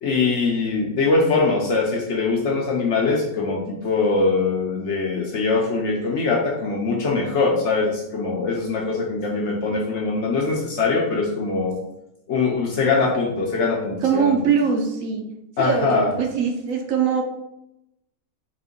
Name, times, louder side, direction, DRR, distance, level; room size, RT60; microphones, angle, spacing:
voice 1, 0.0-11.8 12.3-14.3 15.6-16.1, left 4 dB, 60° left, -1 dB, 0.8 m, -22 dB
voice 2, 14.0-15.2 15.6-17.2, right 6 dB, 70° right, 3 dB, 1.0 m, -22 dB
4.3 x 2.6 x 3.7 m, 0.86 s
omnidirectional pair, 1.6 m